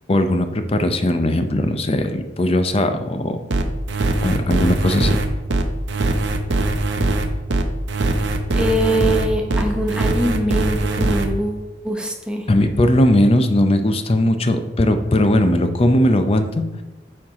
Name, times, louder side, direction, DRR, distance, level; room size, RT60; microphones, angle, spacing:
voice 1, 0.1-3.4 4.2-5.2 12.5-16.6, left 1 dB, 30° left, 8 dB, 0.5 m, -18 dB
sound 1, 3.5-11.3, right 2 dB, 70° right, 0.7 m, -21 dB
voice 2, 8.5-12.5, right 1 dB, 5° right, 1 dB, 0.8 m, -23 dB
8.9 x 4.6 x 3.6 m, 1.1 s
head